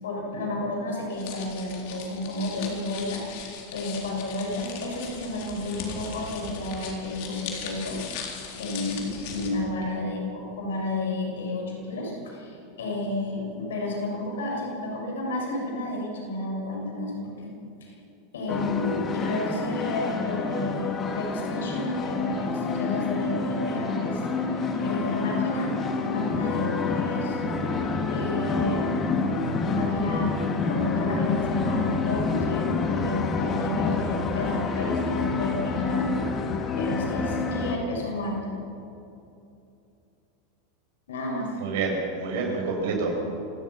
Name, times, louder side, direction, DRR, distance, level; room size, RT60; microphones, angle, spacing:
voice 1, 0.0-8.2 8.6-17.5 17.8-17.9 18.3-25.7 26.0-27.4 28.1-28.9 29.6-36.2 36.8-38.6 41.1-41.5, left 2 dB, 80° left, -1 dB, 6.8 m, -31 dB
sound 1, 1.1-9.5, left 6 dB, 60° left, 3.9 m, -39 dB
sound 2, 18.5-37.8, left 4 dB, 35° left, 2.8 m, -28 dB
voice 2, 41.6-43.2, right 4 dB, 65° right, 0 dB, 6.5 m, -28 dB
27.5 x 17.0 x 5.9 m, 2.7 s
hypercardioid pair, 95°, 0 cm